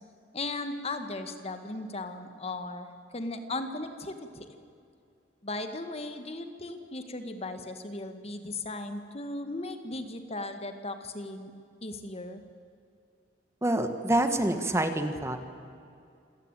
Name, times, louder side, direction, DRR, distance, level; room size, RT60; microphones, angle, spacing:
voice 1, 0.3-2.9 3.1-4.5 5.4-11.5 11.8-12.4, left 2 dB, 35° left, 8 dB, 1.8 m, -37 dB
voice 2, 13.6-15.4, right 1 dB, 15° right, 8 dB, 1.5 m, -26 dB
26.5 x 17.5 x 9.0 m, 2.5 s
head